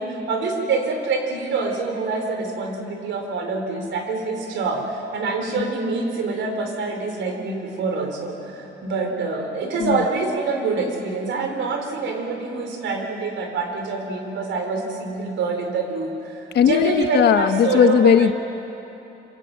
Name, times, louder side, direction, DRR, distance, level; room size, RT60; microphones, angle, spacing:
voice 1, 0.0-18.3, right 3 dB, 80° right, 3 dB, 4.5 m, -26 dB
voice 2, 16.5-18.3, left 8 dB, 60° left, 10 dB, 1.0 m, -17 dB
26.0 x 23.5 x 9.1 m, 3.0 s
cardioid pair, 150°, 19 cm